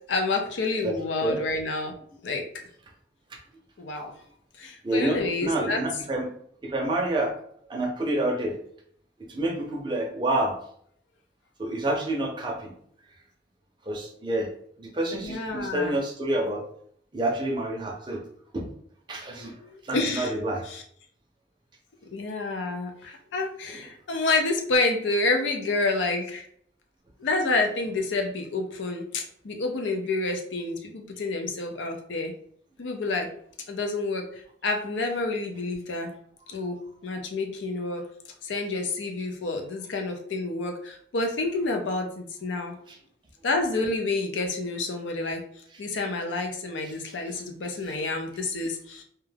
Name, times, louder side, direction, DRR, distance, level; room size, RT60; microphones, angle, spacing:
voice 1, 0.1-1.9 2.2-2.4 3.8-4.1 4.6-5.8 15.2-16.0 19.4-20.3 20.7-20.8 22.1-26.4 27.2-32.3 32.8-33.3 33.7-36.1 36.5-36.8 37.0-38.0 38.4-42.8 43.4-45.4 45.8-49.0, left 3 dB, 90° left, 3 dB, 0.5 m, -29 dB
voice 2, 0.8-1.4 3.3-3.4 4.8-6.3 6.6-7.4 7.7-8.6 9.2-10.6 11.6-12.7 13.9-14.5 14.8-16.6 17.1-18.2 18.5-18.7 19.1-19.6 19.8-20.6 23.7-23.8 42.9-43.0 43.8-43.9 46.8-46.9, right 1 dB, 25° right, 0 dB, 0.5 m, -28 dB
2.3 x 2.2 x 3.3 m, 0.64 s
head